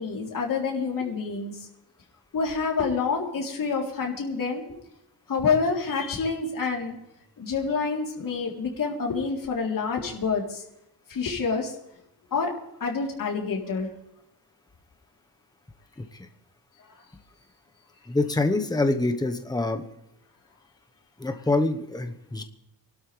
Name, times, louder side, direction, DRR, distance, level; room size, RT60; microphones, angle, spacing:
voice 1, 0.0-1.7 2.3-4.6 5.3-7.0 7.4-10.6 11.1-11.7 12.3-12.5 12.8-13.9 16.9-17.0 21.2-21.3, left 5 dB, 55° left, -1 dB, 3.6 m, -27 dB
voice 2, 18.1-19.8 21.2-22.4, left 2 dB, 10° left, 6 dB, 1.2 m, -25 dB
24.5 x 12.5 x 3.4 m, 0.84 s
wide cardioid pair, 130°, 40 cm